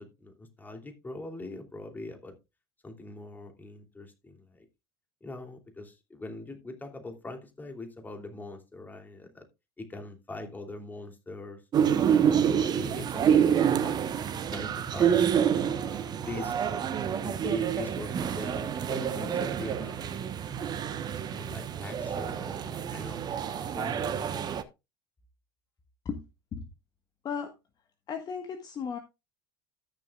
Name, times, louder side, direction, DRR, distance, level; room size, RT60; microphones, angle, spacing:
voice 1, 0.0-2.4 2.8-4.7 5.2-9.5 9.8-11.6 12.1-15.3 15.8-16.7 17.2-20.3 21.3-24.5, left 2 dB, 15° left, 2.9 m, -42 dB
sound 1, 11.7-24.6, right 8 dB, 35° right, 1.2 m, -27 dB
voice 2, 28.1-29.0, left 6 dB, 35° left, 1.5 m, -35 dB
14.0 x 9.4 x 2.4 m
figure-of-eight pair, 65°, 12 cm